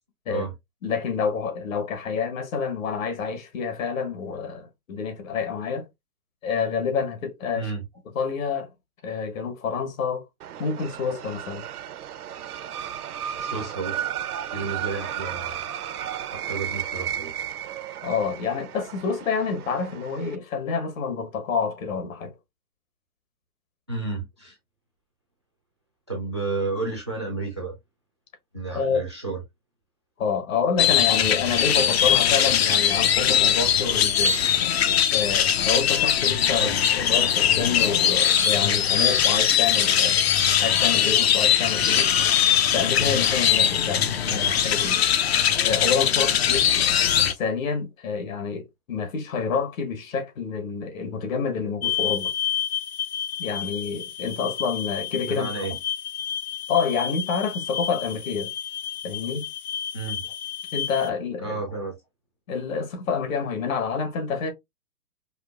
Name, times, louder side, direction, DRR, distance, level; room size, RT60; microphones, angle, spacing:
voice 1, 0.8-5.9 6.4-7.7 8.1-8.7 9.0-10.2 10.6-11.7 18.0-22.3 28.7-29.1 30.2-34.4 35.1-40.3 40.6-42.1 42.7-45.1 45.6-46.7 47.3-52.3 53.4-55.5 56.7-58.5 59.0-59.5 60.7-61.6 62.5-64.5, left 5 dB, 65° left, 1.4 m, -28 dB
sound 1, 10.4-20.4, right 10 dB, 75° right, 0.7 m, -34 dB
voice 2, 13.4-14.0 14.5-15.6 16.3-17.3 23.9-24.6 26.1-27.8 28.5-29.4 36.6-36.8 44.3-44.6 55.2-55.7 59.9-60.2 61.4-61.9, right 3 dB, 20° right, 0.3 m, -31 dB
sound 2, 30.8-47.3, left 9 dB, 45° left, 0.5 m, -21 dB
sound 3, 51.8-61.1, left 9 dB, 80° left, 0.8 m, -31 dB
5.0 x 2.4 x 2.3 m
hypercardioid pair, 145°, 44 cm